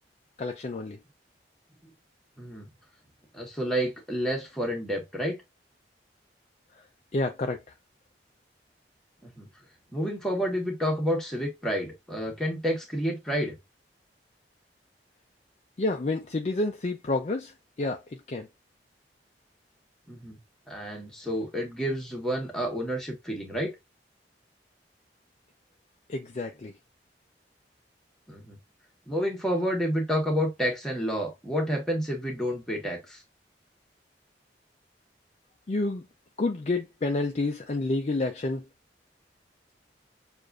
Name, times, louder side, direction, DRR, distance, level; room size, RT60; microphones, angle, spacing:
voice 1, 0.4-1.0 6.7-6.9 7.1-7.7 15.8-18.5 26.1-26.8 35.7-36.1 36.4-38.7, left 2 dB, 40° left, 0.4 m, -29 dB
voice 2, 2.4-2.7 3.3-5.4 9.2-9.5 9.9-13.6 20.1-20.4 20.7-23.7 28.3-28.6 29.1-33.2, equal, 5° left, 1.3 m, -29 dB
6.6 x 2.5 x 2.4 m
head